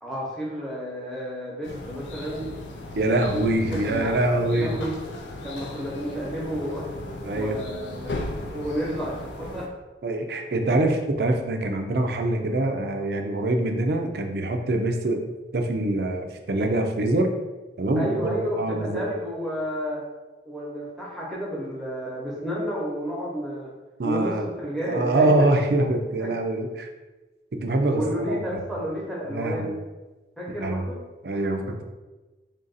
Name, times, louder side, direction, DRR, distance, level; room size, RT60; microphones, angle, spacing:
voice 1, 0.0-2.5 3.7-4.2 4.6-4.9 5.4-6.9 7.3-8.2 8.5-9.7 18.0-20.0 20.4-23.7 24.0-25.3 26.2-26.3 27.9-29.8 30.4-31.0, equal, ahead, -6 dB, 0.9 m, -31 dB
sound 1, 1.6-9.7, left 1 dB, 85° left, 0.5 m, -36 dB
voice 2, 2.9-4.7 7.2-7.7 10.0-15.2 15.5-17.3 17.8-19.1 24.0-24.5 24.8-26.9 27.6-28.8 29.3-29.8 30.6-30.8 31.2-31.8, right 2 dB, 60° right, 4 dB, 0.5 m, -24 dB
3.6 x 2.5 x 4.0 m, 1.2 s
head